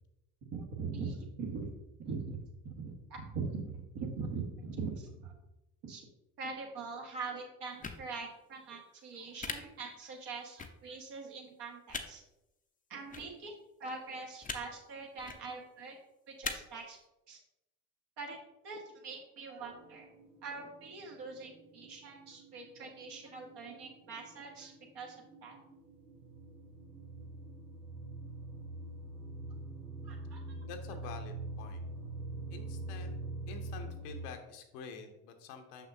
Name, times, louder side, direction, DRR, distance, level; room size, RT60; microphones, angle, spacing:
voice 1, 0.5-1.7 2.0-5.3 5.8-6.0 6.4-12.2 12.9-13.5 13.8-16.0 16.3-17.0 17.3-17.4 18.2-18.4 18.6-20.1 20.4-25.2 25.4-25.6 30.0-30.4 31.0-31.1, right 4 dB, 60° right, 1 dB, 1.6 m, -42 dB
sound 1, 7.8-8.0 9.4-9.5 10.6-10.7 11.9-12.0 13.1-13.2 14.4-14.6 15.2-15.4 16.4-16.5, left 4 dB, 20° left, 0.6 m, -38 dB
sound 2, 19.6-34.3, right 2 dB, 90° right, 0.9 m, -45 dB
voice 2, 30.6-31.8 32.5-33.2 33.5-35.9, left 5 dB, 75° left, 5 dB, 0.9 m, -47 dB
6.3 x 6.0 x 2.7 m, 0.94 s
hypercardioid pair, 55°, 47 cm